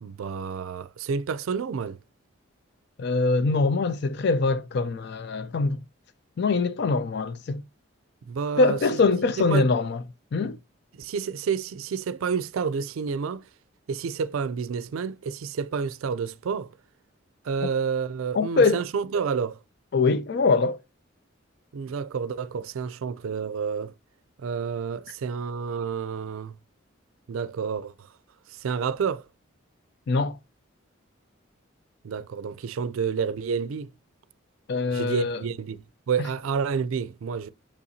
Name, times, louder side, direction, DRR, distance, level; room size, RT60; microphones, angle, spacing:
voice 1, 0.0-2.0 8.3-8.8 9.5-9.7 10.9-13.4 13.9-16.7 17.4-19.6 21.7-23.9 24.4-26.6 27.3-28.1 28.5-29.3 32.0-33.9 34.9-37.5, right 6 dB, 85° right, 0.4 m, -29 dB
voice 2, 3.0-5.8 6.4-7.6 8.6-10.0 10.3-10.6 18.3-18.8 19.9-20.8 30.1-30.4 34.7-35.4, left 3 dB, 55° left, 0.4 m, -23 dB
6.9 x 5.6 x 2.6 m
head